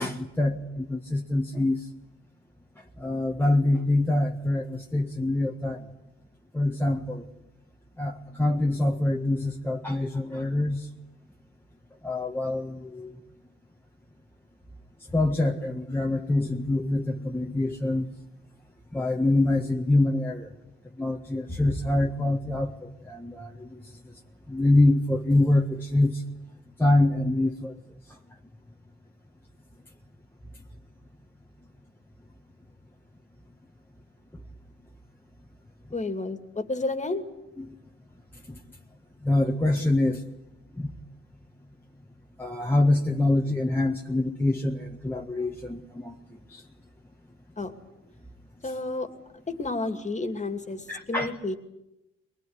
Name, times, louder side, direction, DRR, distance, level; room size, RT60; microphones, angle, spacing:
voice 1, 0.0-1.9 3.0-5.9 6.5-7.2 8.0-10.9 12.0-13.1 15.1-18.1 18.9-20.5 21.0-23.9 24.5-26.2 26.8-27.7 37.6-37.7 38.5-38.6 39.2-40.2 40.8-40.9 42.4-46.2 46.5-46.6 50.9-51.4, left 2 dB, 5° left, 1 dB, 1.6 m, -25 dB
voice 2, 35.9-37.2 47.6-47.7 48.6-49.1 49.5-51.6, left 2 dB, 25° left, 7 dB, 2.6 m, -31 dB
22.5 x 21.0 x 9.7 m, 0.92 s
cardioid pair, 90°, 30 cm